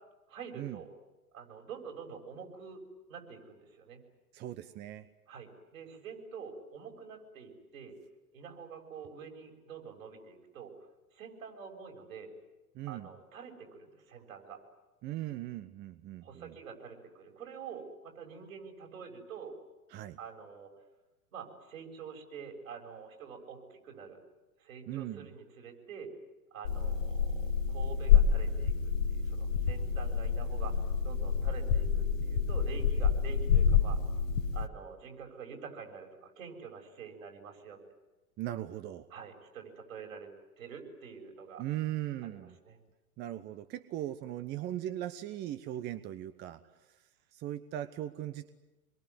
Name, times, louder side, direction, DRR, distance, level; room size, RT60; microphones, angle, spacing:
voice 1, 0.3-0.9 1.3-2.8 3.1-4.0 5.3-7.9 8.3-10.9 11.1-12.3 12.9-14.6 16.2-19.5 20.2-20.7 21.3-24.2 24.6-26.1 26.5-28.7 29.1-34.0 34.5-37.8 39.1-40.3 40.6-41.6 42.2-42.8, right 6 dB, 65° right, 2 dB, 7.2 m, -47 dB
voice 2, 4.3-5.1 12.7-13.1 15.0-16.5 19.9-20.2 24.9-25.3 38.4-39.1 41.6-42.6 43.2-46.6 47.3-48.5, right 13 dB, 25° right, 12 dB, 0.9 m, -39 dB
sound 1, 26.6-34.7, left 7 dB, 60° left, 1.7 m, -28 dB
26.5 x 22.5 x 9.8 m, 1.1 s
figure-of-eight pair, 100°, 45 cm